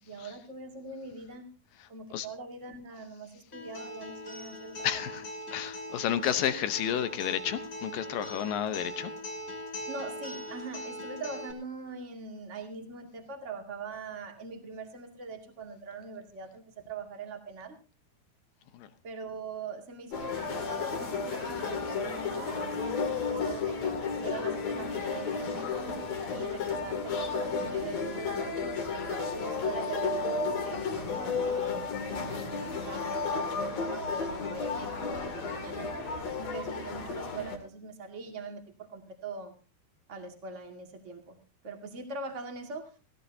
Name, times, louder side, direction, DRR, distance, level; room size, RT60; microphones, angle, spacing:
voice 1, 0.0-1.5 1.9-4.9 9.9-17.8 19.0-25.7 26.3-35.9 36.3-39.5 40.1-41.4 41.6-42.9, right 4 dB, 25° right, 4 dB, 1.9 m, -42 dB
Acoustic guitar, 3.5-11.5, left 1 dB, 30° left, 3.4 m, -41 dB
voice 2, 4.8-9.1 18.7-18.9, left 10 dB, 70° left, 11 dB, 2.4 m, -31 dB
sound 1, 20.1-37.6, left 4 dB, 45° left, 3.3 m, -33 dB
sound 2, 21.5-32.1, right 3 dB, 70° right, 6.4 m, -49 dB
17.0 x 16.5 x 2.8 m, 0.34 s
omnidirectional pair, 4.4 m